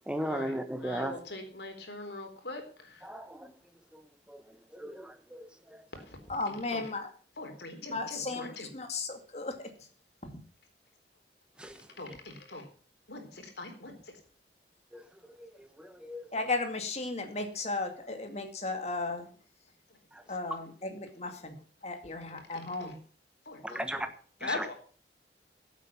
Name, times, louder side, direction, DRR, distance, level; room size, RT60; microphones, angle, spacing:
voice 1, 0.1-1.2 3.0-3.5 3.9-6.0 11.6-11.9 14.9-16.3 20.1-20.5 23.6-24.1 24.4-24.7, equal, 5° right, 8 dB, 1.3 m, -38 dB
voice 2, 0.8-3.0 6.1-6.2 6.7-6.8 7.4-8.7 12.0-12.6 13.1-13.9 22.5-22.9 23.5-23.8 24.4-24.7, left 2 dB, 70° left, 4 dB, 3.9 m, -41 dB
voice 3, 6.3-7.1 7.9-9.7 10.2-10.4 12.1-12.2 16.3-19.3 20.3-21.6 21.8-23.0, left 3 dB, 40° left, 6 dB, 2.3 m, -35 dB
15.5 x 8.3 x 5.9 m, 0.42 s
head